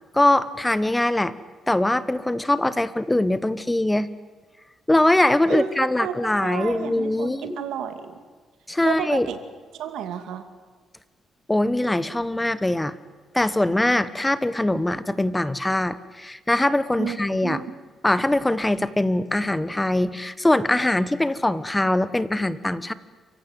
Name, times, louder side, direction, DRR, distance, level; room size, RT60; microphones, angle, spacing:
voice 1, 0.1-1.3 1.7-4.1 4.9-7.6 8.7-9.3 11.5-12.9 13.3-17.6 18.0-22.9, left 1 dB, 10° left, 15 dB, 1.1 m, -22 dB
voice 2, 5.5-6.1 6.4-8.2 8.8-9.4 9.8-10.4 17.0-17.6, right 8 dB, 90° right, 9 dB, 2.5 m, -31 dB
28.5 x 16.0 x 9.3 m, 1.5 s
cardioid pair, 105°, 0 cm